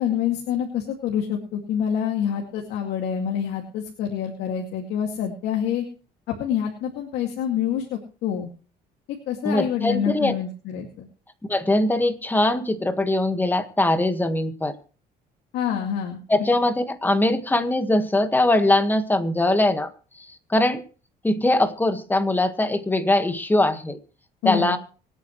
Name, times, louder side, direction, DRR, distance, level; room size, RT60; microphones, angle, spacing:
voice 1, 0.0-5.9 6.4-8.5 9.1-11.1 15.5-16.2 24.4-24.8, left 9 dB, 85° left, 1 dB, 2.4 m, -27 dB
voice 2, 9.4-10.4 11.5-14.7 16.3-19.9 20.2-20.8 21.2-24.0 24.4-24.8, left 1 dB, 10° left, 8 dB, 1.6 m, -21 dB
25.0 x 9.0 x 3.2 m, 0.38 s
cardioid pair, 110°, 17 cm